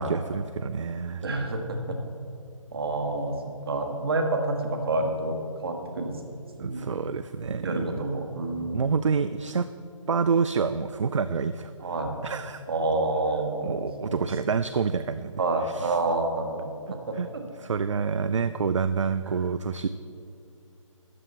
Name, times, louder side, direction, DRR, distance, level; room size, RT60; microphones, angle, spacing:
voice 1, 0.0-1.2 6.6-8.0 8.7-9.7 10.1-11.7 12.2-12.6 13.6-15.3 15.7-16.0 16.9-17.3 17.6-19.9, right 5 dB, 60° right, 12 dB, 0.4 m, -27 dB
voice 2, 1.2-2.0 2.7-6.9 7.6-8.9 11.8-12.2 12.7-14.6 15.4-17.2 19.3-19.4, right 2 dB, 45° right, 4 dB, 1.4 m, -29 dB
13.0 x 8.9 x 4.2 m, 2.6 s
figure-of-eight pair, 145°, 17 cm